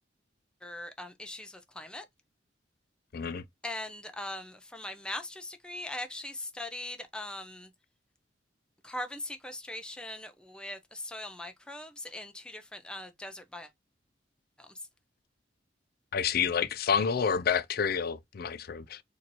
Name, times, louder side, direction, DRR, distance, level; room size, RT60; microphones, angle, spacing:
voice 1, 0.6-2.1 3.6-7.7 8.8-13.7 14.6-14.7, left 1 dB, 5° left, 0.5 m, -40 dB
voice 2, 3.1-3.4 16.1-19.0, left 6 dB, 55° left, 0.4 m, -29 dB
4.2 x 2.7 x 2.9 m
head